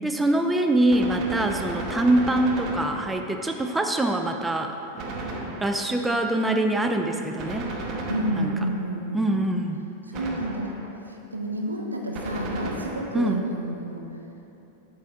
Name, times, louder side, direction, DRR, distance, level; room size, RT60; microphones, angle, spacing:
voice 1, 0.0-4.8 5.6-7.7 8.4-8.5 9.1-9.8 13.1-13.4, right 1 dB, 10° right, 4 dB, 0.3 m, -24 dB
Gunshot gunfire, 0.9-3.4 5.0-6.0 7.4-8.8 10.1-10.9 12.1-13.3, right 2 dB, 35° right, 0.8 m, -34 dB
voice 2, 8.1-9.5 10.1-10.7 11.3-14.0, right 1 dB, 80° right, 1 dB, 0.6 m, -30 dB
7.2 x 3.7 x 4.1 m, 3.0 s
figure-of-eight pair, 90°, 0 cm